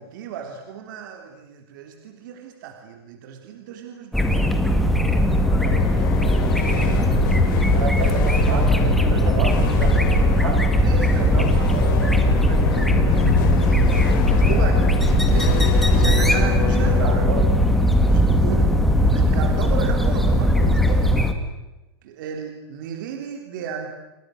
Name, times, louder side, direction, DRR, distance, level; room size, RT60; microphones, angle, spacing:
voice 1, 0.0-5.5 8.2-8.3 10.8-17.0 18.0-18.7 19.1-21.1 22.0-23.9, right 7 dB, 50° right, 4 dB, 3.7 m, -34 dB
sound 1, 4.1-21.3, equal, ahead, 2.0 m, -19 dB
sound 2, 5.0-18.9, left 9 dB, 50° left, 3.4 m, -26 dB
voice 2, 5.4-6.1 6.6-7.3 7.7-10.7 11.2-11.5 16.9-17.6, right 6 dB, 90° right, 5 dB, 7.7 m, -31 dB
29.5 x 26.0 x 6.6 m, 0.98 s
supercardioid pair, 170°, 14 cm